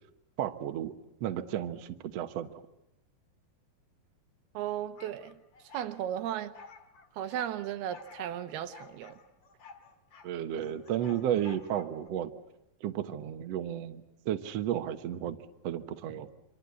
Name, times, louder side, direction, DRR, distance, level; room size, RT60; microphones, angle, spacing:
voice 1, 0.4-0.9 1.2-2.5 10.2-12.3 12.8-15.4 15.6-16.3, right 10 dB, 60° right, 1.8 m, -33 dB
voice 2, 4.5-5.4 5.7-6.5 7.2-9.2, right 11 dB, 85° right, 3.1 m, -35 dB
sound 1, 5.0-5.9 6.5-7.5 7.9-8.4 8.7-10.3 10.6-12.1, left 4 dB, 40° left, 2.0 m, -51 dB
27.0 x 25.0 x 8.4 m
omnidirectional pair, 4.4 m